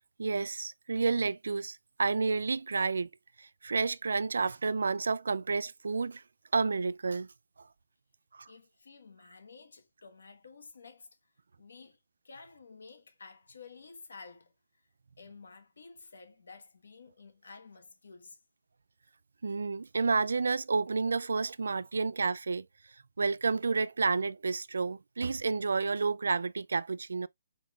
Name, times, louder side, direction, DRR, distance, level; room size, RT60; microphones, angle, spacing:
voice 1, 0.2-3.1 3.4-6.2 6.5-7.3 8.3-8.5 19.4-22.7 23.2-27.3, right 4 dB, 85° right, 0.3 m, -30 dB
voice 2, 8.5-11.1 11.6-12.0 12.2-14.5 15.2-18.4, left 4 dB, 80° left, 1.2 m, -52 dB
4.3 x 3.5 x 2.3 m
hypercardioid pair, 165°, 0 cm